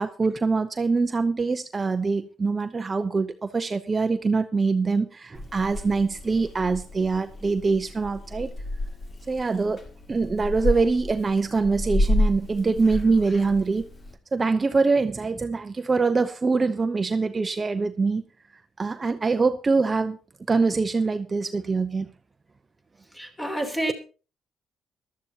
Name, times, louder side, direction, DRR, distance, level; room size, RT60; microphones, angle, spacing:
voice 1, 0.0-8.5 9.3-9.8 10.1-13.9 14.3-18.2 18.8-20.2 20.5-22.1, right 4 dB, 30° right, 8 dB, 0.7 m, -24 dB
Purr / Meow, 5.3-14.1, left 1 dB, 40° left, 2.4 m, -30 dB
voice 2, 23.1-23.9, right 1 dB, 10° left, 4 dB, 3.2 m, -29 dB
18.5 x 12.0 x 2.9 m, 0.35 s
cardioid pair, 90°, 0 cm